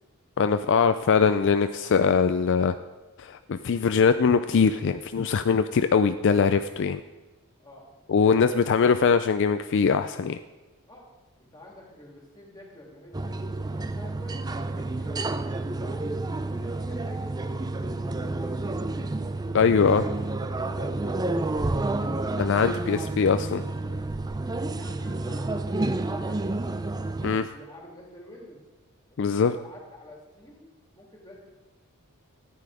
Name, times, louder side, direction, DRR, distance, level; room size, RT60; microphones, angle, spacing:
voice 1, 0.4-2.7 3.2-7.0 8.1-10.4 19.5-20.0 22.4-23.6 27.2-27.5 29.2-29.5, left 5 dB, 55° left, 10 dB, 0.4 m, -22 dB
voice 2, 8.2-8.6 10.8-11.1 11.4-13.4 13.6-16.1 16.3-19.3 20.6-23.1 23.8-24.0 24.3-26.8 27.5-28.6 29.1-30.7 30.9-31.4, left 1 dB, 20° left, -2 dB, 2.9 m, -47 dB
sound 1, 13.1-27.4, right 2 dB, 15° right, 0.4 m, -30 dB
13.5 x 9.8 x 4.9 m, 1.2 s
head